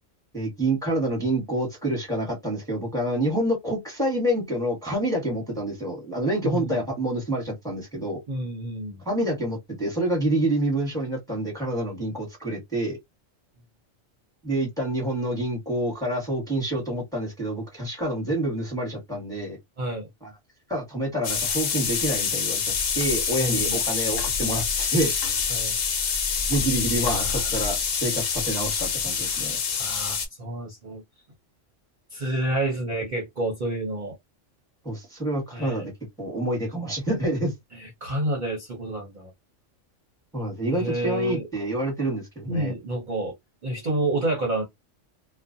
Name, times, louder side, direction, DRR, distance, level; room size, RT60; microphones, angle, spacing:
voice 1, 0.3-8.2 9.1-13.0 14.4-19.6 20.2-20.3 20.7-25.1 26.5-27.3 27.5-29.6 34.8-35.9 36.2-37.5 40.3-42.7, right 1 dB, 5° left, 1.0 m, -27 dB
voice 2, 6.4-6.8 8.3-9.0 19.8-20.1 23.4-23.8 25.5-25.8 26.8-27.5 29.8-31.0 32.1-34.2 35.5-35.9 37.7-39.3 40.7-41.5 42.5-43.3 43.6-44.6, right 1 dB, 45° right, 0.7 m, -29 dB
sound 1, 21.2-30.3, left 6 dB, 80° left, 1.1 m, -26 dB
2.4 x 2.2 x 2.5 m
omnidirectional pair, 1.3 m